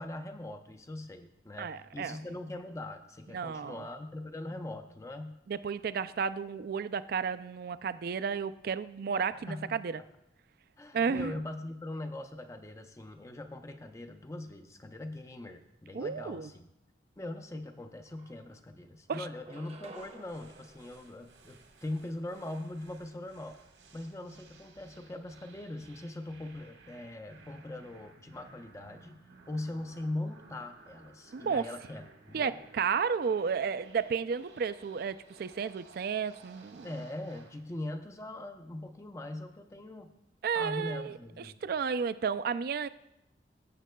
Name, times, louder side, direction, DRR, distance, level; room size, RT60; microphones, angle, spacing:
voice 1, 0.0-5.4 9.5-9.8 10.8-16.7 17.2-23.6 23.9-29.2 29.5-32.6 36.8-40.1 40.6-41.6, left 1 dB, 15° left, 7 dB, 0.5 m, -41 dB
voice 2, 1.6-2.2 3.3-3.8 5.5-10.0 10.9-11.4 15.9-16.5 19.1-19.3 31.3-31.7 32.3-36.9 40.4-42.9, right 6 dB, 55° right, 13 dB, 0.3 m, -32 dB
sound 1, 17.6-17.7 18.1-18.8 19.3-21.9, right 2 dB, 35° right, 0.7 m, -53 dB
sound 2, 19.9-37.6, right 3 dB, 75° right, 1.3 m, -57 dB
15.5 x 7.3 x 2.2 m, 0.85 s
head